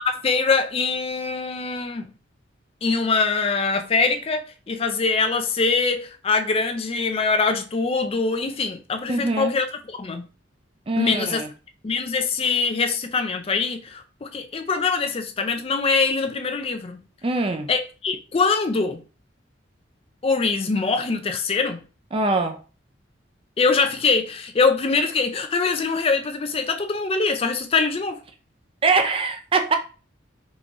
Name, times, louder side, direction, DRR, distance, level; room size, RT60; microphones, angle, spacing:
voice 1, 0.0-2.1 2.8-4.4 4.7-9.7 10.0-10.3 11.0-11.4 11.8-17.0 17.7-19.0 20.2-21.8 23.6-28.2, left 4 dB, 30° left, 0.4 m, -23 dB
voice 2, 9.1-9.5 10.9-11.5 17.2-17.7 22.1-22.6 28.8-29.8, right 3 dB, 30° right, 0.4 m, -23 dB
3.7 x 2.9 x 2.5 m
head